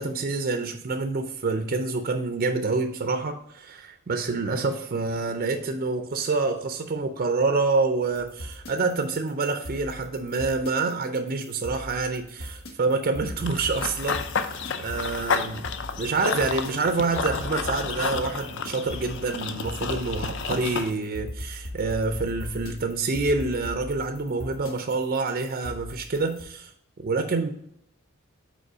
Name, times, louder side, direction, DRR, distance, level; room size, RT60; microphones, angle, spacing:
voice 1, 0.0-15.7 16.0-26.7 27.0-27.5, right 3 dB, 40° right, 7 dB, 0.4 m, -27 dB
sound 1, 8.1-26.4, left 1 dB, 85° left, 1.2 m, -39 dB
Run / Bird vocalization bird call bird song, 13.5-20.9, left 5 dB, 55° left, 0.5 m, -31 dB
5.3 x 4.3 x 4.9 m, 0.73 s
head